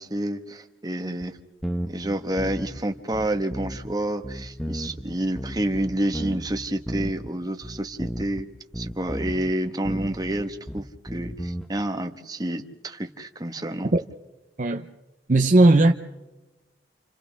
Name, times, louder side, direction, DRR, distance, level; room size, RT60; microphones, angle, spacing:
voice 1, 0.0-1.4 1.9-8.5 8.7-13.9, right 1 dB, 20° right, 1.2 m, -29 dB
sound 1, 1.2-1.3 1.6-2.8 3.1-3.9 4.2-7.3 7.6-8.5 8.7-9.5 9.9-11.7, equal, ahead, 0.9 m, -33 dB
voice 2, 15.3-15.9, right 2 dB, 45° right, 0.6 m, -17 dB
29.5 x 28.0 x 3.5 m
head